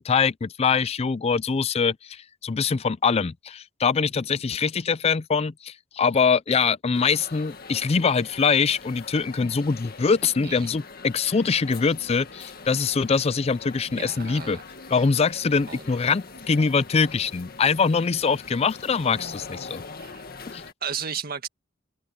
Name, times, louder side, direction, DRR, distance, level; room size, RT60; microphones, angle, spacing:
voice 1, 0.0-14.6 14.9-19.8 20.5-20.6, left 5 dB, 30° left, 0.4 m, -23 dB
sound 1, 6.9-20.7, left 4 dB, 50° left, 1.9 m, -43 dB
voice 2, 10.4-10.8 13.9-14.6 15.7-15.9 20.0-20.2 20.8-21.5, right 7 dB, 50° right, 1.9 m, -34 dB
head